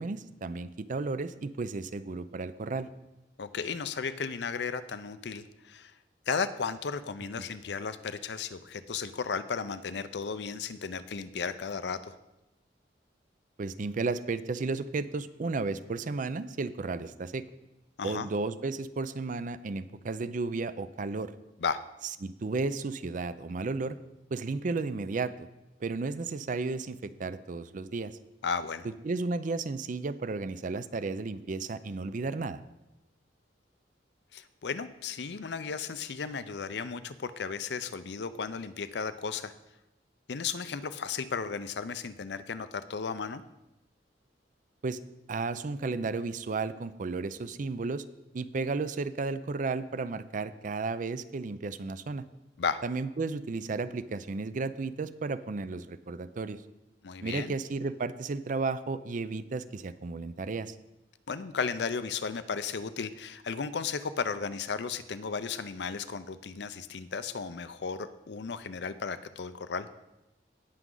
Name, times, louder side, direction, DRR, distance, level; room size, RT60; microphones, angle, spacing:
voice 1, 0.0-2.9 7.3-7.5 13.6-17.4 18.0-21.3 22.2-24.0 24.3-25.5 25.8-28.2 28.8-32.6 44.8-45.0 45.3-48.0 48.3-52.2 52.8-56.6 57.2-60.7, right 3 dB, 45° right, 14 dB, 0.4 m, -33 dB
voice 2, 3.4-5.9 6.3-12.2 18.0-18.3 21.6-21.8 28.4-28.9 34.3-39.5 40.3-43.4 52.6-52.8 57.0-57.5 61.3-69.9, left 5 dB, 65° left, 12 dB, 0.5 m, -34 dB
17.5 x 6.1 x 3.8 m, 0.95 s
head